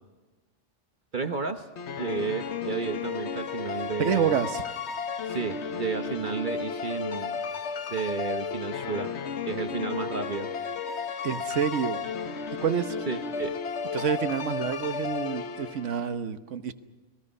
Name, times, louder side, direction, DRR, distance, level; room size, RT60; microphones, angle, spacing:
voice 1, 1.1-1.7 2.0-4.4 5.3-7.4 7.9-9.1 9.5-10.5 13.1-13.5, right 5 dB, 45° right, 7 dB, 1.1 m, -32 dB
sound 1, 1.8-16.1, left 6 dB, 65° left, 1.3 m, -33 dB
voice 2, 4.0-4.6 11.2-12.0 12.6-13.0 13.9-16.7, right 7 dB, 75° right, 9 dB, 1.3 m, -28 dB
30.0 x 20.0 x 5.5 m, 1.3 s
omnidirectional pair, 1.3 m